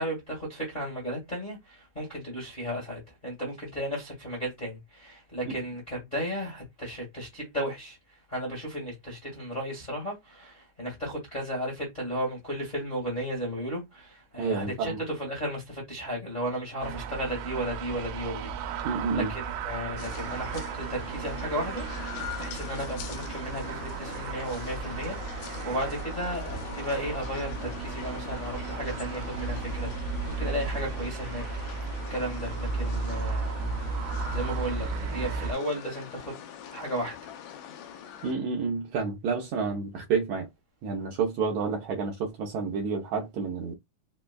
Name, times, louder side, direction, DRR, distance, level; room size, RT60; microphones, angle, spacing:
voice 1, 0.0-33.8 34.3-36.3 36.7-37.1 37.8-37.9, equal, 25° left, 1.1 m, -34 dB
voice 2, 14.4-15.0 18.8-19.3 38.2-40.5 40.8-43.7, right 5 dB, 75° right, 1.7 m, -29 dB
sound 1, 16.8-35.5, right 5 dB, 90° right, 2.2 m, -34 dB
sound 2, 20.0-38.3, left 9 dB, 80° left, 1.8 m, -42 dB
5.1 x 2.2 x 2.2 m
omnidirectional pair, 3.7 m